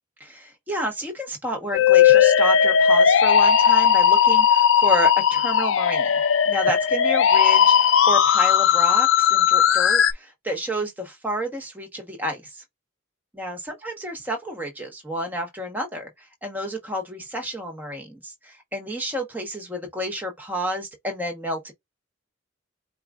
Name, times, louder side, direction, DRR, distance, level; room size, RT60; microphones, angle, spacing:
voice 1, 0.2-6.1 6.4-12.6 13.3-21.7, equal, 10° right, 1.2 m, -30 dB
Musical instrument, 1.7-10.1, left 8 dB, 80° left, 0.5 m, -17 dB
4.6 x 2.4 x 3.4 m
head